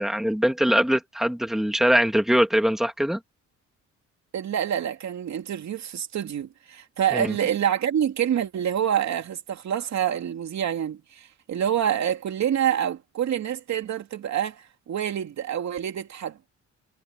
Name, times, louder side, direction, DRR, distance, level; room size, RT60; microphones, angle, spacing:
voice 1, 0.0-3.2 7.1-7.3, equal, ahead, 2.6 m, -22 dB
voice 2, 4.3-16.4, right 9 dB, 65° right, 3.0 m, -27 dB
cardioid pair, 90°, 30 cm